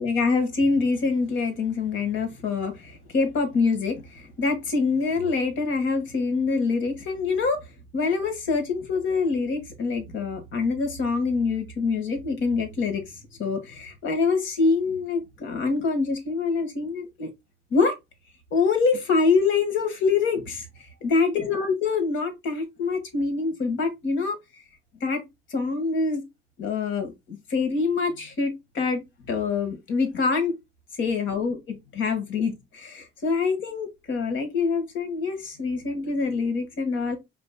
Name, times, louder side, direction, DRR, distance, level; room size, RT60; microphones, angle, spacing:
voice 1, 0.0-7.6 7.9-13.0 13.4-17.3 17.7-17.9 18.5-24.4 25.0-25.2 25.5-26.2 26.6-29.0 29.3-30.6 30.9-37.2, left 4 dB, 75° left, 1.7 m, -25 dB
5.1 x 4.3 x 2.2 m
cardioid pair, 90°, 20 cm